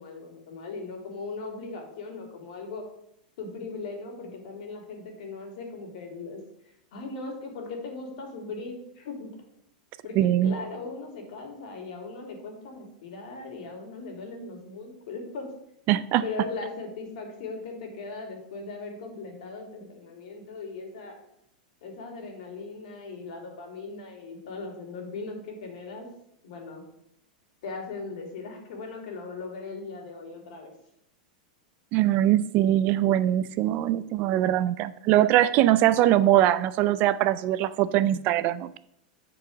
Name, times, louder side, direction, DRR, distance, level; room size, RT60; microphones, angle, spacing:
voice 1, 0.0-2.9 3.4-6.4 6.9-9.3 10.0-15.5 16.2-21.2 21.8-26.1 26.4-26.8 27.6-30.7, left 3 dB, 70° left, 2 dB, 2.5 m, -38 dB
voice 2, 10.2-10.6 15.9-16.2 31.9-38.8, right 13 dB, 40° right, 15 dB, 0.4 m, -22 dB
8.5 x 4.7 x 5.0 m, 0.75 s
supercardioid pair, 140°, 4 cm